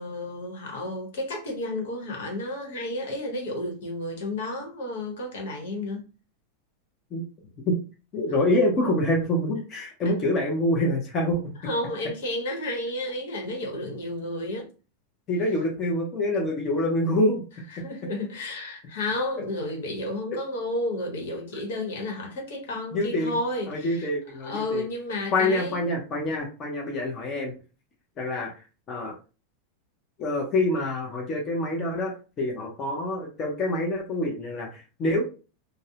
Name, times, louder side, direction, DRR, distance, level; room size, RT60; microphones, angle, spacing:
voice 1, 0.0-6.0 11.6-14.7 17.7-24.1 24.4-25.8, left 1 dB, 80° left, 1.1 m, -32 dB
voice 2, 8.1-11.4 15.3-17.4 22.9-23.4 23.7-24.8 25.3-27.5 28.2-29.1 30.2-35.2, left 1 dB, 25° left, 0.6 m, -26 dB
2.4 x 2.0 x 2.7 m
supercardioid pair, 155°, 0 cm